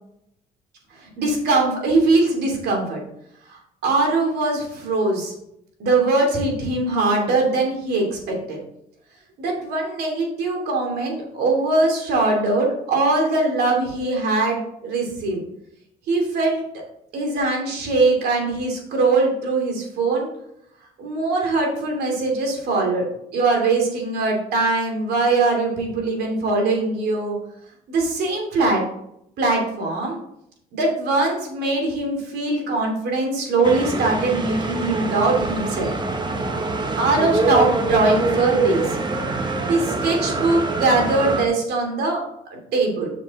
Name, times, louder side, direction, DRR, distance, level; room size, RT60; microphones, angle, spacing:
voice 1, 0.9-3.0 3.5-5.3 5.8-8.6 9.4-15.4 16.1-16.6 17.1-20.3 21.0-23.1 23.3-27.3 27.9-28.8 29.4-30.2 30.7-35.9 37.0-39.0 39.7-42.2 42.5-43.1, right 3 dB, 70° right, 1 dB, 2.9 m, -21 dB
sound 1, 33.6-41.5, right 3 dB, 25° right, 1.1 m, -24 dB
7.5 x 6.6 x 3.7 m, 0.77 s
cardioid pair, 110°, 17 cm